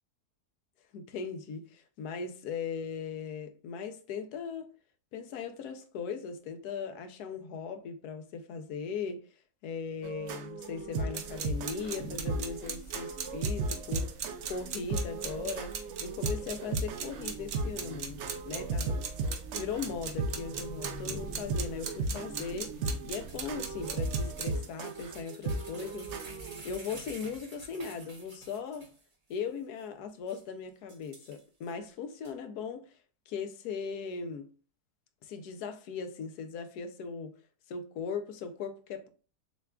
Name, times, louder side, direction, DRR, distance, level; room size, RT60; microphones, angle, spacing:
voice 1, 0.9-4.7 5.1-9.2 9.6-14.1 14.4-18.2 18.5-19.0 19.2-22.7 23.0-26.1 26.6-28.9 29.3-32.9 33.3-34.5 35.2-37.4 37.7-39.1, left 6 dB, 80° left, 1.1 m, -38 dB
sound 1, 10.0-26.6, right 3 dB, 80° right, 0.6 m, -36 dB
sound 2, 11.1-24.6, right 5 dB, 60° right, 1.0 m, -41 dB
sound 3, 23.3-29.0 29.3-29.4 29.8-29.9 30.3-30.4 30.9-31.7 32.2-32.3, right 2 dB, 35° right, 1.0 m, -50 dB
6.6 x 2.3 x 2.2 m
omnidirectional pair, 1.7 m